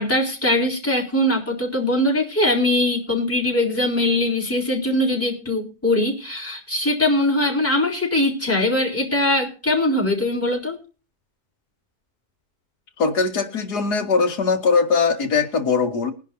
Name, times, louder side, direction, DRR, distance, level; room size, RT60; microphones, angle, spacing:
voice 1, 0.0-10.8, left 1 dB, 10° left, -3 dB, 4.0 m, -21 dB
voice 2, 13.0-16.1, left 5 dB, 85° left, 7 dB, 2.5 m, -20 dB
22.0 x 11.0 x 2.8 m, 0.35 s
omnidirectional pair, 1.7 m